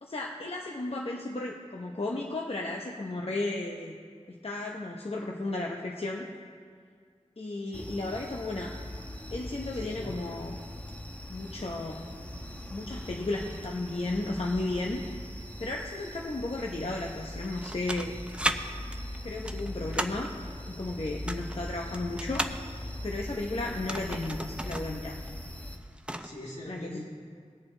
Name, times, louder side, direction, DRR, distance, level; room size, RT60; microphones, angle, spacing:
voice 1, 0.0-4.0 4.3-6.3 7.4-8.7 9.3-10.6 11.3-12.0 12.7-15.1 15.6-18.1 19.2-20.3 20.7-22.5 23.0-25.2 26.7-27.0, left 2 dB, 55° left, -1 dB, 0.8 m, -34 dB
voice 2, 7.7-8.1 9.8-10.1 26.1-27.0, left 1 dB, 85° left, -7 dB, 3.0 m, -43 dB
sound 1, 7.7-25.8, left 1 dB, 10° left, 1.0 m, -41 dB
sound 2, 17.4-18.6 18.9-20.3 21.1-22.6 23.7-24.9 25.2-25.3 25.7-26.3, right 1 dB, 10° right, 0.5 m, -34 dB
20.0 x 7.1 x 3.3 m, 2.1 s
wide cardioid pair, 45°, 12 cm